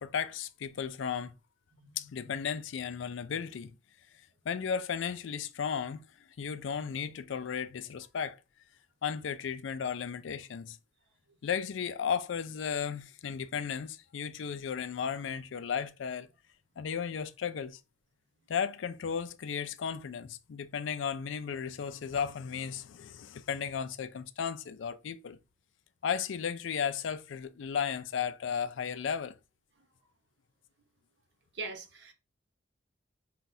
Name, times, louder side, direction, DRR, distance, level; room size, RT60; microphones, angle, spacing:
voice 1, 0.0-1.3 2.0-3.7 4.5-6.0 6.4-8.4 9.0-10.8 11.4-16.3 16.8-17.8 18.5-25.4 26.0-29.4, left 7 dB, 90° left, 0.4 m, -34 dB
voice 2, 31.5-32.1, right 3 dB, 70° right, 0.9 m, -40 dB
5.7 x 2.3 x 2.6 m
head